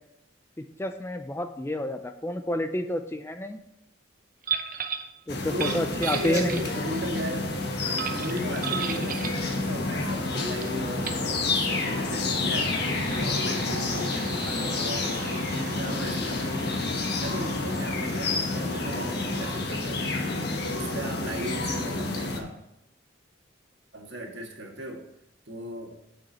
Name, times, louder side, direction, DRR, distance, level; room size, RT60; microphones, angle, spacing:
voice 1, 0.6-3.6 5.3-6.8, left 1 dB, 15° left, 8 dB, 0.4 m, -30 dB
sound 1, 4.4-5.1 5.5-7.0 8.0-9.4 10.6-10.7 11.0-11.3 12.3-21.6, right 7 dB, 45° right, 0.8 m, -38 dB
sound 2, 5.3-22.4, left 3 dB, 55° left, 1.3 m, -29 dB
voice 2, 5.5-7.5 7.8-12.8 13.1-16.8 17.2-20.0 20.7-22.5 23.9-25.1 25.5-26.0, equal, 60° right, 1 dB, 1.7 m, -36 dB
8.4 x 6.4 x 4.2 m, 0.84 s
head